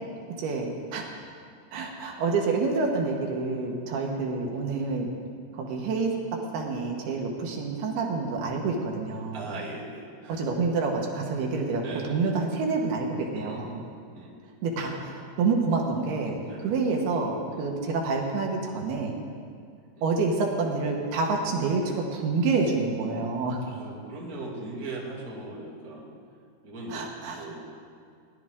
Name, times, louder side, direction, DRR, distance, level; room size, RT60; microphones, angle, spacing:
voice 1, 0.4-1.1 1.7-5.1 5.5-6.1 6.5-9.5 10.3-13.8 14.6-19.1 20.0-23.6 26.9-27.4, right 4 dB, 75° right, 1 dB, 3.0 m, -28 dB
voice 2, 9.3-10.5 11.8-12.2 13.3-14.3 16.4-16.7 17.5-17.7 19.9-20.1 23.6-26.2 26.6-27.6, right 2 dB, 30° right, -5 dB, 2.1 m, -40 dB
19.0 x 11.5 x 3.6 m, 2.3 s
omnidirectional pair, 4.7 m